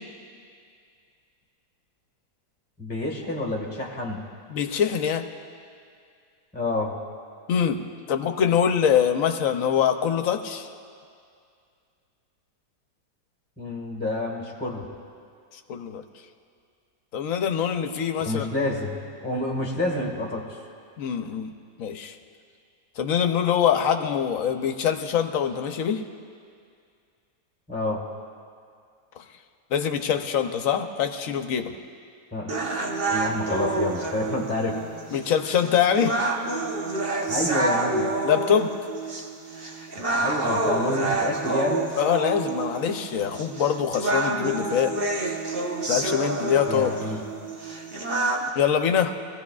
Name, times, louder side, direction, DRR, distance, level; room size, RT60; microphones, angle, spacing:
voice 1, 2.8-4.2 6.5-6.9 13.6-14.9 18.2-20.4 27.7-28.0 32.3-32.5 33.1-34.8 37.3-38.1 40.0-41.9 46.7-47.2, left 2 dB, 5° left, -1 dB, 1.4 m, -28 dB
voice 2, 4.5-5.3 7.5-10.7 15.7-16.0 17.1-18.4 21.0-21.5 21.8-22.1 23.0-26.0 29.7-31.7 35.1-36.2 38.2-38.7 42.0-44.9 45.9-46.9 48.6-49.1, left 8 dB, 65° left, 7 dB, 1.0 m, -24 dB
sound 1, 32.5-48.5, right 2 dB, 40° right, 1.1 m, -28 dB
22.0 x 15.5 x 2.4 m, 2.3 s
omnidirectional pair, 1.7 m